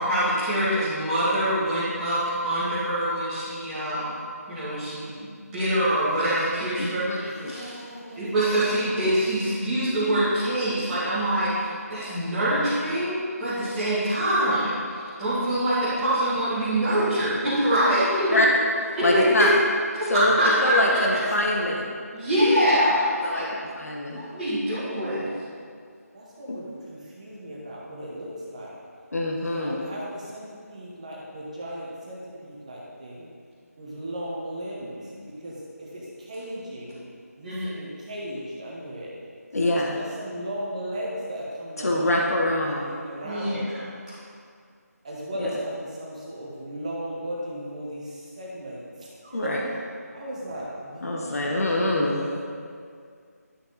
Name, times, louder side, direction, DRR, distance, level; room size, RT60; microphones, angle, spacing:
voice 1, 0.0-4.2 4.5-7.7 8.2-18.4 19.0-19.5 19.9-21.2 22.1-23.5 24.0-25.3 35.0-35.1 37.4-37.7 43.2-44.2, right 1 dB, 5° right, -16 dB, 2.1 m, -25 dB
voice 2, 6.8-7.5 18.3-18.5 19.0-19.5 20.1-21.9 23.2-23.5 23.8-24.2 26.5-26.6 29.1-29.8 39.5-40.0 41.8-42.9 45.4-45.5 49.3-49.6 51.0-52.2, left 1 dB, 65° left, -1 dB, 1.3 m, -24 dB
voice 3, 7.4-8.7 19.2-19.3 21.5-21.6 26.1-28.7 29.5-33.3 33.8-35.0 35.4-37.0 37.4-39.1 39.7-42.2 42.6-43.6 45.0-48.8 49.2-49.5 50.1-51.8 52.0-52.4, equal, 25° right, -4 dB, 1.2 m, -36 dB
11.5 x 6.0 x 4.1 m, 2.2 s
figure-of-eight pair, 170°, 9 cm